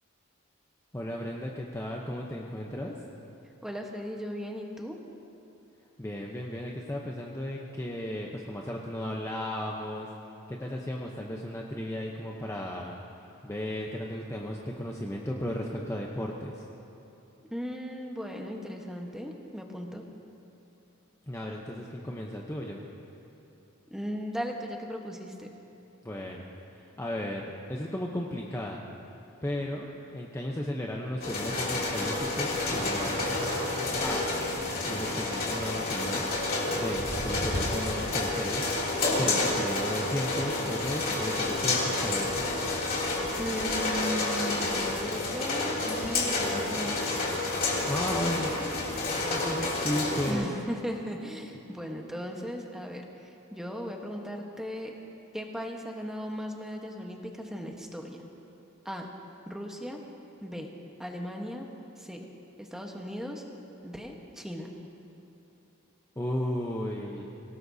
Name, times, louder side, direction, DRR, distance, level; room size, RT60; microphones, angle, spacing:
voice 1, 0.9-2.9 6.0-10.1 10.5-12.9 13.4-16.6 21.3-22.9 26.0-28.9 29.4-33.4 34.0-34.3 34.9-36.4 36.7-42.5 47.9-50.5 66.2-67.3, left 1 dB, 15° left, -1 dB, 0.8 m, -35 dB
voice 2, 3.6-5.0 17.5-20.0 23.9-25.5 43.4-47.4 50.3-54.9 55.3-58.3 58.8-59.1 59.4-60.0 60.4-60.7 61.0-61.7 62.0-62.3 62.6-63.4 63.8-64.7, equal, ahead, 1 dB, 1.1 m, -37 dB
sound 1, 31.2-50.3, left 2 dB, 45° left, 2.9 m, -29 dB
Explosion, 32.7-35.7, right 2 dB, 40° right, 1.5 m, -41 dB
23.5 x 18.0 x 2.8 m, 3.0 s
head